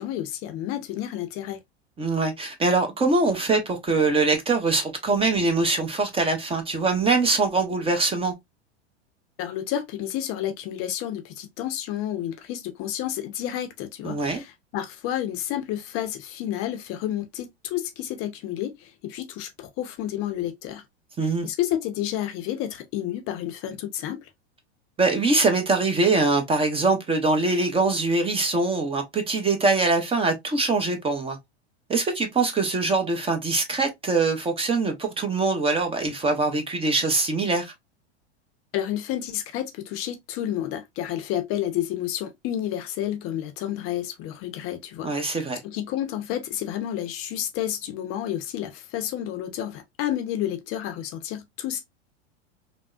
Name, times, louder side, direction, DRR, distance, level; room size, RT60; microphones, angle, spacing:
voice 1, 0.0-1.6 9.4-20.8 21.2-24.3 38.7-51.8, left 11 dB, 40° left, 0.5 m, -30 dB
voice 2, 2.0-8.3 14.0-14.4 21.2-21.5 25.0-31.4 31.9-37.7 45.0-45.6, right 3 dB, 15° right, 0.6 m, -23 dB
3.4 x 2.1 x 2.3 m
hypercardioid pair, 105°, 33 cm